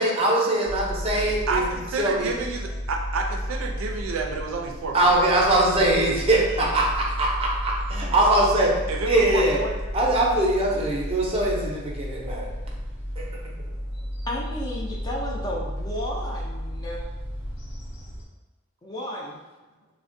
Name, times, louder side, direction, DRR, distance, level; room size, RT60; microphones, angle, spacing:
voice 1, 0.0-1.6 2.0-2.3 4.9-6.9 7.2-8.7 9.1-9.6 9.9-12.5, right 1 dB, 30° right, -2 dB, 0.6 m, -22 dB
sound 1, 0.6-18.2, equal, 55° left, 0.7 m, -33 dB
voice 2, 1.5-5.2 8.9-10.0 10.6-10.7, right 3 dB, 80° right, 2 dB, 0.4 m, -30 dB
voice 3, 14.3-17.1 18.8-19.4, equal, 20° left, -4 dB, 0.5 m, -33 dB
3.3 x 2.1 x 2.6 m, 1.2 s
head